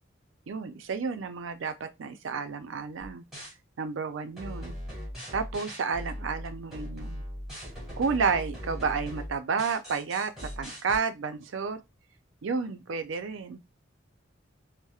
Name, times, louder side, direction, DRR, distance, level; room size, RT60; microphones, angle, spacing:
voice 1, 0.5-3.2 3.8-4.7 5.3-7.2 8.0-11.8 12.4-13.6, right 5 dB, 75° right, 0.4 m, -31 dB
sound 1, 3.0-3.5 4.4-11.0, equal, ahead, 1.6 m, -39 dB
4.1 x 2.0 x 2.3 m
head